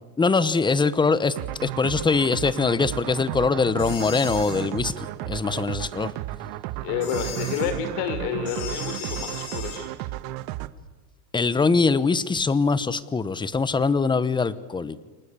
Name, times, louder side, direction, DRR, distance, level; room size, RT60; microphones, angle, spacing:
voice 1, 0.2-1.4 1.6-6.1 11.3-15.0, left 4 dB, 10° left, 17 dB, 1.0 m, -23 dB
sound 1, 1.4-10.7, right 15 dB, 50° right, 1.3 m, -33 dB
sound 2, 3.8-4.6 7.0-7.7 8.5-9.8, left 6 dB, 90° left, 7.4 m, -37 dB
voice 2, 6.8-9.9, left 8 dB, 60° left, 9 dB, 6.1 m, -29 dB
29.0 x 24.0 x 8.4 m, 1.2 s
supercardioid pair, 140°, 44 cm